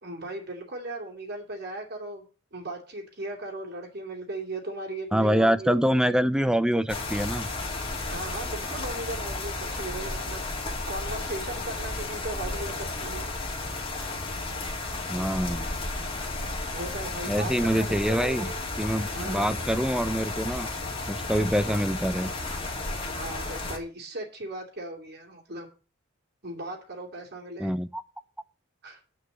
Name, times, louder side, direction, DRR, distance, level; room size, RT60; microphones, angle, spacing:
voice 1, 0.0-2.3 2.5-6.0 8.1-10.4 10.9-13.3 16.7-18.6 19.1-19.5 23.1-25.7 26.4-27.7 28.8-29.0, right 2 dB, 50° right, 3.0 m, -37 dB
voice 2, 5.1-7.5 15.1-15.8 17.3-18.5 18.8-20.7 21.1-22.3 27.6-28.0, equal, 5° right, 0.5 m, -25 dB
sound 1, 6.9-23.8, left 2 dB, 25° left, 2.5 m, -33 dB
9.8 x 5.5 x 7.9 m
head